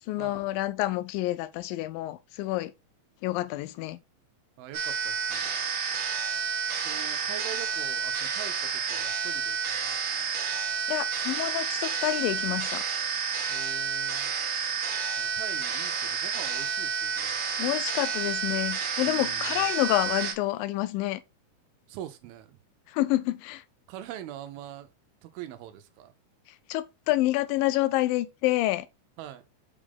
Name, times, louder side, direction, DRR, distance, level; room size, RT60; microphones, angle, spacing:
voice 1, 0.1-2.7 3.2-4.0 10.9-12.8 17.6-21.2 22.9-23.6 26.7-28.9, left 16 dB, 80° left, 2.3 m, -28 dB
voice 2, 4.6-5.6 6.8-10.0 13.5-14.3 15.2-17.4 19.1-19.7 21.9-22.6 23.9-24.9 25.2-26.1 29.2-29.4, right 11 dB, 90° right, 2.7 m, -43 dB
sound 1, 4.7-20.3, right 7 dB, 70° right, 1.2 m, -30 dB
5.8 x 5.1 x 3.5 m
omnidirectional pair, 4.2 m